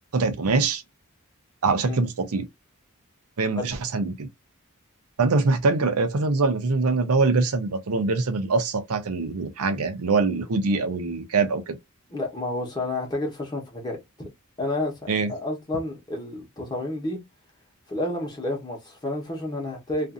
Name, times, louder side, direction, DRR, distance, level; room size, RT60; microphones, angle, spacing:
voice 1, 0.1-0.8 1.6-2.5 3.4-4.3 5.2-11.8 15.1-15.3, right 3 dB, 80° right, 0.6 m, -23 dB
voice 2, 12.1-14.3 14.6-17.2 17.9-20.1, left 2 dB, 20° left, 1.0 m, -30 dB
2.5 x 2.5 x 2.5 m
head